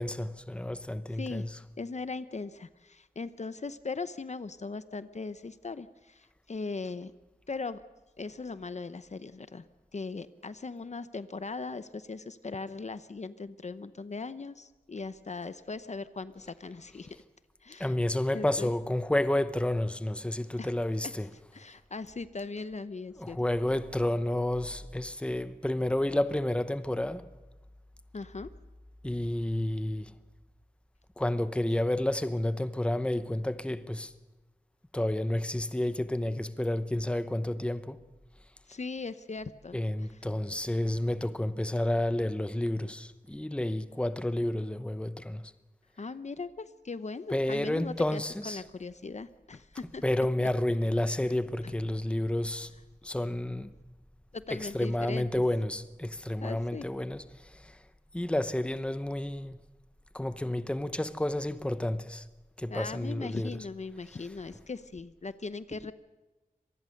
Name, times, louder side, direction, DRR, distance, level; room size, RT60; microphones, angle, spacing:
voice 1, 0.0-1.6 17.8-21.3 23.2-27.4 29.0-30.1 31.2-34.1 34.9-38.0 39.7-45.5 47.3-48.6 50.0-52.7 53.0-53.7 54.5-57.8 58.1-59.6 60.1-62.3 62.6-63.6, left 1 dB, 5° left, 0.9 m, -30 dB
voice 2, 1.8-7.1 7.5-7.8 8.2-9.7 9.9-17.2 17.6-17.9 18.3-18.7 20.6-20.7 21.5-23.4 28.1-28.5 38.7-39.8 46.0-50.0 50.4-50.5 51.6-51.7 54.3-55.4 56.4-56.8 62.7-65.9, left 4 dB, 50° left, 0.8 m, -39 dB
25.5 x 19.5 x 6.6 m
wide cardioid pair, 95°, 15 cm